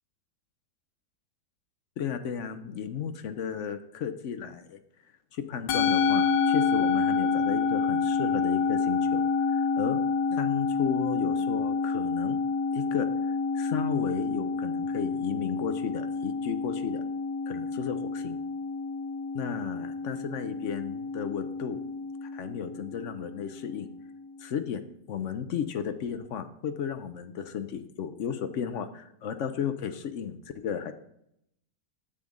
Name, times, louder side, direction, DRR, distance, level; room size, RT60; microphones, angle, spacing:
voice 1, 2.0-4.8 5.3-10.0 10.3-12.4 12.7-17.0 17.5-18.4 19.3-21.8 22.2-23.9 24.4-24.8 25.1-30.9, left 7 dB, 60° left, 9 dB, 0.8 m, -34 dB
Musical instrument, 5.7-24.2, left 5 dB, 85° left, 1.5 m, -28 dB
10.0 x 7.3 x 3.8 m, 0.76 s
omnidirectional pair, 1.9 m